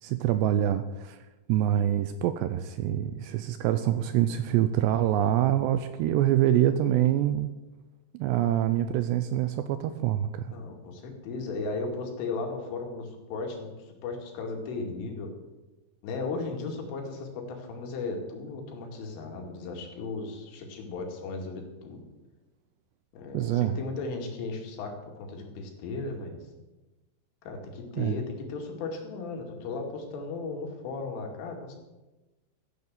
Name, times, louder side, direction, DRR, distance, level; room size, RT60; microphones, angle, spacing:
voice 1, 0.0-1.2 1.5-7.5 8.1-10.5 23.3-23.8 28.0-28.2, right 11 dB, 85° right, 11 dB, 2.5 m, -25 dB
voice 2, 10.5-15.3 16.0-22.0 23.1-26.4 27.4-31.7, left 3 dB, 90° left, 2 dB, 4.8 m, -36 dB
14.5 x 9.7 x 7.7 m, 1.1 s
omnidirectional pair, 5.5 m